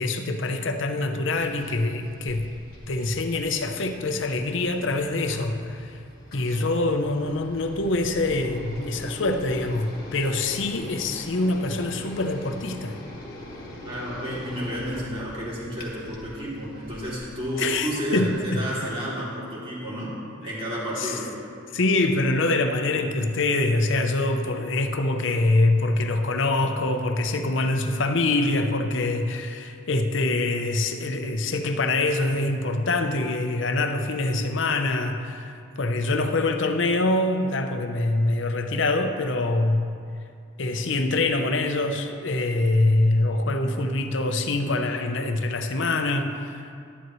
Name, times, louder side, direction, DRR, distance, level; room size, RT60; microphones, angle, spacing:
voice 1, 0.0-2.5 2.9-6.0 6.3-13.0 17.6-18.6 21.0-21.1 21.7-39.9 40.6-46.7, left 2 dB, 65° left, 7 dB, 0.7 m, -24 dB
sound 1, 1.3-18.4, left 1 dB, 45° left, 1.7 m, -42 dB
voice 2, 13.8-20.1 20.4-21.3, equal, 25° right, -7 dB, 2.7 m, -31 dB
12.0 x 11.0 x 3.1 m, 2.3 s
head